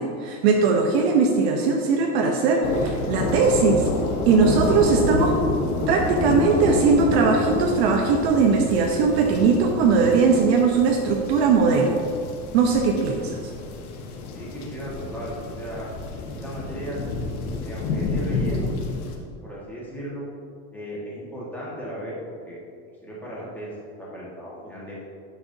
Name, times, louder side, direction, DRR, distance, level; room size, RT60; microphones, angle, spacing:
voice 1, 0.0-3.9 4.2-5.3 5.9-12.0 12.5-13.4, right 4 dB, 45° right, 2 dB, 0.8 m, -20 dB
sound 1, 2.6-19.2, left 3 dB, 80° left, 1.4 m, -29 dB
voice 2, 14.3-15.9 16.4-17.0 17.6-18.7 19.4-20.3 20.7-22.6 23.0-23.7 24.0-24.9, equal, 5° left, -7 dB, 1.4 m, -36 dB
10.5 x 6.9 x 2.7 m, 2.3 s
supercardioid pair, 160°, 43 cm